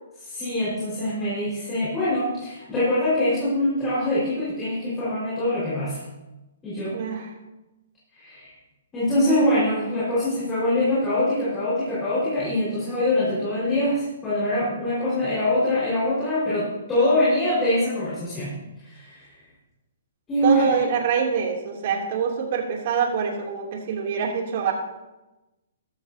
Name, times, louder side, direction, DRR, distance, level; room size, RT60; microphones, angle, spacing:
voice 1, 0.2-6.0 6.6-7.0 8.1-8.5 8.9-18.5 18.8-19.2 20.3-20.7, left 1 dB, 15° left, -9 dB, 4.9 m, -24 dB
voice 2, 6.9-7.3 9.3-9.5 20.4-24.7, right 6 dB, 50° right, 1 dB, 2.9 m, -25 dB
14.5 x 13.0 x 2.8 m, 1.0 s
hypercardioid pair, 145°, 0 cm